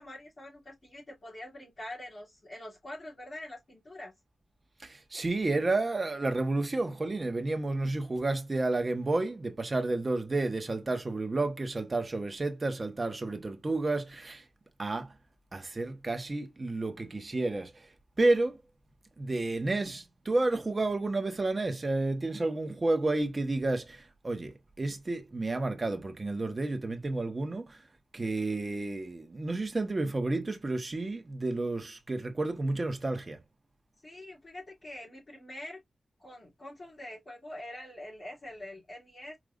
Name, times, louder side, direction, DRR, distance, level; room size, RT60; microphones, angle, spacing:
voice 1, 0.0-4.1 34.0-35.8 36.2-39.4, left 1 dB, 45° left, 2.8 m, -45 dB
voice 2, 4.8-14.4 14.8-15.1 15.5-17.9 18.2-18.6 19.2-27.8 28.1-33.4, right 2 dB, 35° right, 1.2 m, -31 dB
5.1 x 2.9 x 2.5 m
cardioid pair, 70°, 0 cm